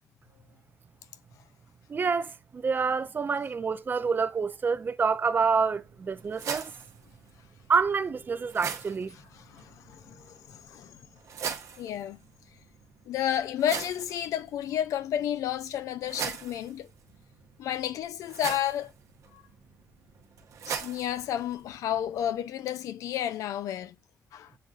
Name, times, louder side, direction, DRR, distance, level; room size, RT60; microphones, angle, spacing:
voice 1, 1.9-6.7 7.7-9.1, right 5 dB, 40° right, 0.4 m, -27 dB
sound 1, 5.4-22.4, right 7 dB, 70° right, 0.8 m, -42 dB
voice 2, 9.5-11.0 11.8-12.2 13.1-16.9 17.6-18.9 19.3-19.4 20.7-24.0 24.3-24.5, left 10 dB, 90° left, 0.4 m, -31 dB
7.6 x 2.6 x 2.4 m
cardioid pair, 85°, 5 cm